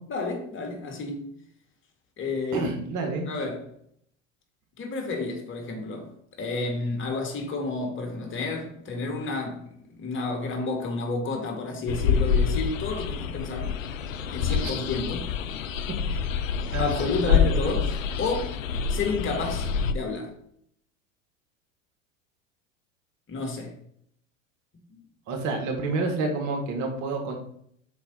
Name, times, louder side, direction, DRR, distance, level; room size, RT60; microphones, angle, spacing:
voice 1, 0.1-1.3 2.2-2.8 3.3-3.6 4.8-6.1 6.4-9.6 10.0-13.8 14.3-15.3 16.8-18.5 18.9-20.3 23.3-23.7 24.9-25.0, left 3 dB, 30° left, 2.0 m, -30 dB
voice 2, 2.5-3.3 14.5-14.7 16.7-17.5 25.3-27.4, right 3 dB, 50° right, 1.7 m, -29 dB
sound 1, 11.9-19.9, left 6 dB, 80° left, 0.6 m, -27 dB
5.8 x 4.9 x 4.1 m
hypercardioid pair, 80°, 39 cm